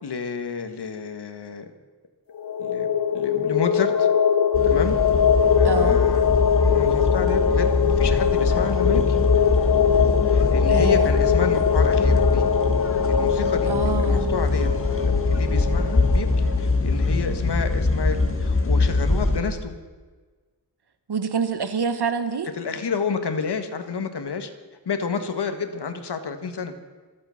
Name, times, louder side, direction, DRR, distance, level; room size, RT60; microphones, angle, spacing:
voice 1, 0.0-1.7 2.6-2.9 3.1-4.1 4.6-5.0 5.6-6.3 6.7-9.2 10.3-12.5 13.1-14.7 15.0-19.7 22.6-24.5 24.8-26.7, left 5 dB, 70° left, 8 dB, 1.7 m, -30 dB
sound 1, 2.3-16.7, left 8 dB, 55° left, 1.0 m, -22 dB
sound 2, 4.5-19.4, left 3 dB, 30° left, 2.0 m, -23 dB
voice 2, 5.6-6.0 10.7-11.1 13.7-14.3 21.1-22.5, right 5 dB, 65° right, 10 dB, 1.5 m, -26 dB
26.0 x 9.0 x 5.9 m, 1.4 s
wide cardioid pair, 115°, 41 cm